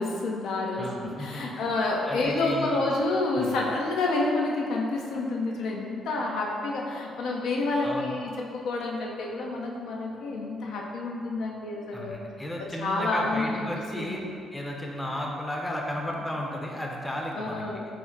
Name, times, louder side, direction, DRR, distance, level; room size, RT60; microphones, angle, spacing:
voice 1, 0.0-12.2 12.6-14.4 17.3-17.9, left 2 dB, 80° left, -1 dB, 0.5 m, -29 dB
voice 2, 0.7-1.6 2.1-2.8 3.4-3.5 7.8-8.1 11.9-14.2 14.5-17.6, left 1 dB, 15° left, -1 dB, 0.5 m, -34 dB
4.5 x 2.1 x 3.8 m, 2.4 s
cardioid pair, 90°, 0 cm